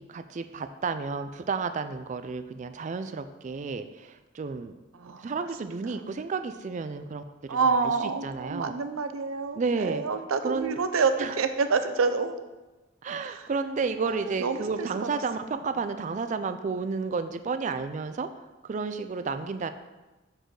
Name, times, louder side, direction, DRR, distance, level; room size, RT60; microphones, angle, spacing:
voice 1, 0.0-4.8 5.2-7.6 7.8-8.7 9.5-10.0 10.4-10.8 11.2-11.4 13.0-18.3 18.6-19.7, right 4 dB, 35° right, 10 dB, 0.3 m, -32 dB
voice 2, 4.9-5.3 5.6-5.7 7.5-12.3 13.2-13.4 14.0-14.9, right 4 dB, 90° right, 9 dB, 0.5 m, -28 dB
6.2 x 5.1 x 3.8 m, 1.1 s
head